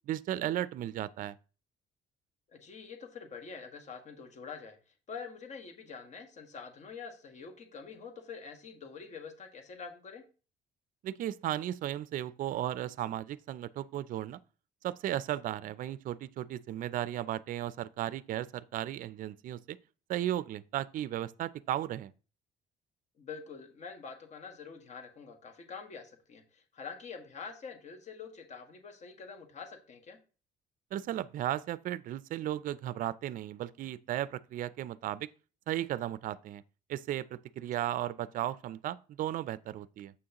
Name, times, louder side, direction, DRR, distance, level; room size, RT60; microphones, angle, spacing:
voice 1, 0.1-1.4 11.0-14.4 14.8-19.8 20.1-22.1 30.9-35.3 35.7-36.6 36.9-40.1, right 12 dB, 55° right, 0.4 m, -35 dB
voice 2, 2.5-4.8 5.1-10.2 23.2-30.2, left 5 dB, 45° left, 1.6 m, -46 dB
7.4 x 6.2 x 2.9 m
cardioid pair, 110°, 17 cm